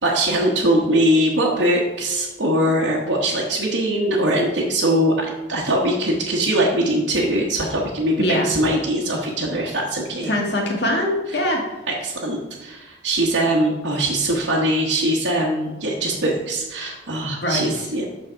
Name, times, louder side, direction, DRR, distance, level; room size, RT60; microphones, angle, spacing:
voice 1, 0.0-10.3 11.9-18.0, right 1 dB, 90° right, -4 dB, 1.1 m, -21 dB
voice 2, 10.2-11.8 17.4-17.9, left 1 dB, 65° left, 0 dB, 1.8 m, -22 dB
6.3 x 6.0 x 4.5 m, 1.1 s
head